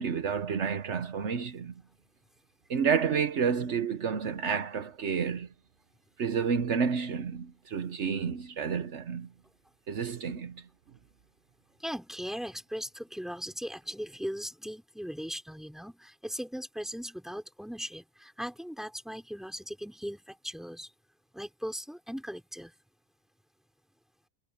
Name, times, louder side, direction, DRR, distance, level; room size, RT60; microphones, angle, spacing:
voice 1, 0.0-1.7 2.7-5.5 6.2-9.3 9.9-10.5, right 6 dB, 70° right, 1.3 m, -30 dB
voice 2, 11.8-20.9 21.3-22.7, equal, ahead, 4.6 m, -38 dB
omnidirectional pair, 1.2 m